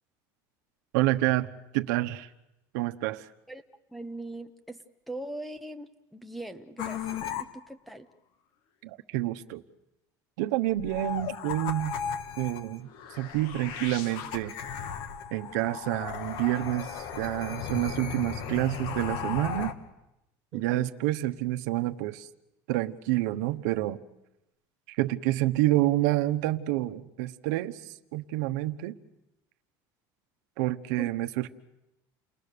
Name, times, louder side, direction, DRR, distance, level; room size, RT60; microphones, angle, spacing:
voice 1, 0.9-1.5 1.7-2.3 2.7-3.3 8.8-9.6 10.4-12.0 12.4-12.9 13.2-14.5 15.3-19.7 20.5-22.3 22.7-24.0 24.9-29.0 30.6-31.5, right 16 dB, 85° right, 8 dB, 1.2 m, -28 dB
voice 2, 3.9-4.8 5.1-8.1 20.5-20.9 31.0-31.1, right 1 dB, ahead, 12 dB, 1.0 m, -41 dB
sound 1, 6.8-7.4 10.7-19.7, left 7 dB, 60° left, 1.7 m, -36 dB
29.5 x 21.0 x 6.9 m, 0.89 s
cardioid pair, 160°, 9 cm